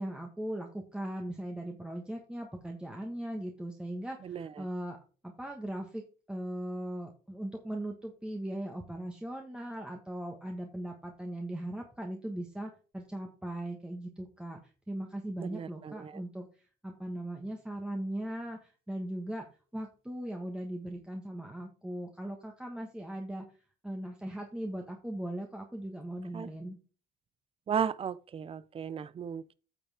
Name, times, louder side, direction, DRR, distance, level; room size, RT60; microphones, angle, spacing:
voice 1, 0.0-5.0 5.2-6.0 6.3-14.6 14.9-16.5 16.8-19.5 19.7-23.4 23.8-26.8, right 1 dB, 5° right, 1.3 m, -39 dB
voice 2, 4.2-4.7 15.4-16.2 26.3-26.5 27.7-29.5, right 7 dB, 35° right, 0.5 m, -35 dB
9.1 x 7.0 x 3.5 m
cardioid pair, 110°, 17 cm